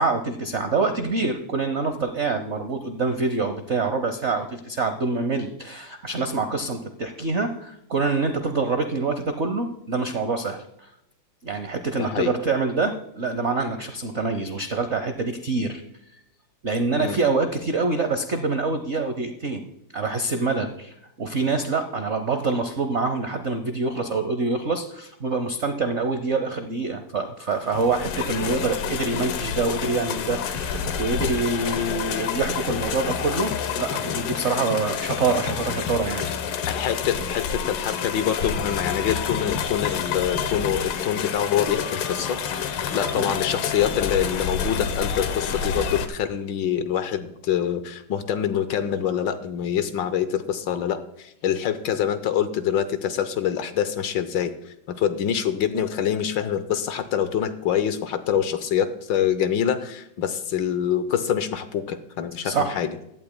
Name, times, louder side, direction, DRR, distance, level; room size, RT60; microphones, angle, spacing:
voice 1, 0.0-10.9 11.4-15.8 16.6-19.7 19.9-36.3 43.1-43.3 62.4-62.8, right 3 dB, 65° right, 8 dB, 0.6 m, -26 dB
voice 2, 12.0-12.3 16.9-17.2 36.7-42.4 42.9-63.0, left 9 dB, 70° left, 11 dB, 1.3 m, -25 dB
sound 1, 27.6-46.1, left 7 dB, 85° left, 1.8 m, -28 dB
16.0 x 12.0 x 2.2 m, 0.82 s
omnidirectional pair, 2.3 m